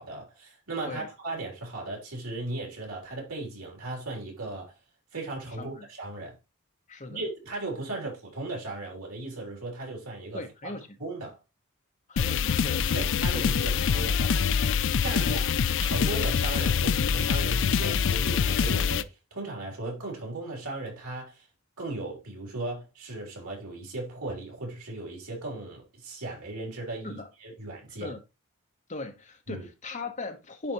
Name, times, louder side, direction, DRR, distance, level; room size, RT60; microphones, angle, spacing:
voice 1, 0.0-4.7 5.1-6.4 7.1-10.7 11.0-11.4 12.9-14.7 15.0-15.5 15.8-21.5 21.8-28.1 29.5-29.6, right 2 dB, 80° right, 3.4 m, -37 dB
voice 2, 5.6-5.9 6.9-7.2 10.3-10.9 12.1-13.5 15.2-15.4 27.0-27.3 28.0-28.2 28.9-30.7, left 3 dB, 35° left, 1.1 m, -38 dB
sound 1, 12.2-19.0, left 6 dB, 55° left, 0.4 m, -25 dB
10.0 x 4.3 x 3.0 m
head